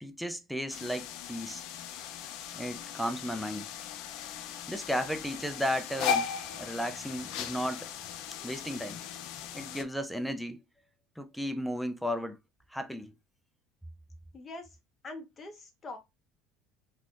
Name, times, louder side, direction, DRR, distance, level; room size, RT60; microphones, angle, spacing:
voice 1, 0.0-1.6 2.5-3.7 4.7-7.9 8.4-9.0 9.5-10.6 11.2-12.4 12.7-13.1, equal, ahead, 0.6 m, -34 dB
sound 1, 0.7-9.8, left 7 dB, 70° left, 0.5 m, -38 dB
voice 2, 14.3-14.8 15.0-16.0, left 2 dB, 30° left, 1.2 m, -43 dB
4.2 x 2.8 x 2.5 m
supercardioid pair, 110°, 0 cm